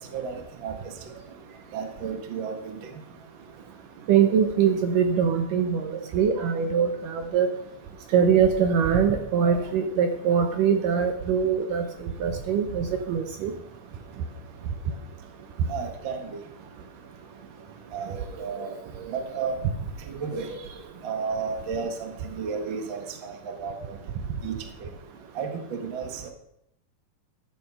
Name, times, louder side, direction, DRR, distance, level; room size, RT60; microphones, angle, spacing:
voice 1, 1.7-2.8 9.4-9.6 15.7-16.2 17.9-18.1 18.4-18.7 19.1-19.5 20.1-20.5 21.0-23.0 23.2-23.3 23.6-23.7 24.4-24.5 25.3-26.3, right 5 dB, 45° right, 4 dB, 1.6 m, -32 dB
voice 2, 4.1-7.5 8.1-11.8 12.2-13.5 18.1-18.2, right 7 dB, 70° right, 6 dB, 2.3 m, -23 dB
13.5 x 8.6 x 5.6 m, 0.77 s
omnidirectional pair, 4.3 m